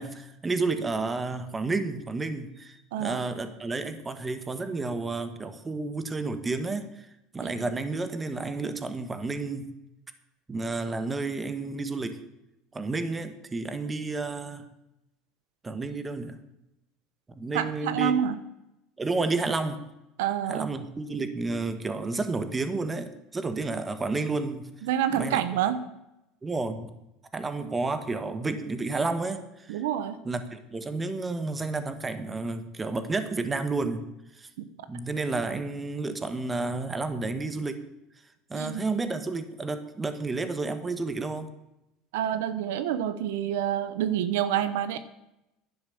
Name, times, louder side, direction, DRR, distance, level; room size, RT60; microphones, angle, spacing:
voice 1, 0.0-7.1 7.3-9.7 10.5-12.2 12.7-14.7 15.6-16.4 17.3-18.1 19.0-19.8 20.5-24.7 25.1-25.4 26.4-26.9 27.3-29.8 30.2-34.1 34.4-34.5 34.9-37.8 38.5-41.5, right 3 dB, 15° right, 10 dB, 1.3 m, -31 dB
voice 2, 17.5-18.4 20.2-20.7 24.9-25.8 29.7-30.2 34.6-34.7 38.5-38.8 42.1-45.0, right 10 dB, 85° right, 12 dB, 0.9 m, -27 dB
11.0 x 10.5 x 7.1 m, 0.90 s
supercardioid pair, 125°, 0 cm